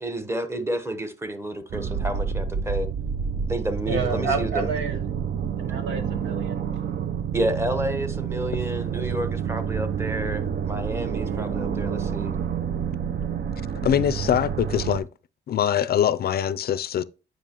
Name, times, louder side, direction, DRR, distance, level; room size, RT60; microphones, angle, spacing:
voice 1, 0.0-2.9 3.5-4.8 7.3-12.3, right 1 dB, 15° right, 1.1 m, -30 dB
sound 1, 1.7-15.0, right 7 dB, 55° right, 0.7 m, -28 dB
voice 2, 3.9-5.0 5.6-6.6 11.2-11.5, right 4 dB, 80° right, 1.3 m, -30 dB
voice 3, 13.8-15.1 15.5-17.0, left 9 dB, 50° left, 0.4 m, -23 dB
9.1 x 5.3 x 2.9 m
cardioid pair, 90°, 20 cm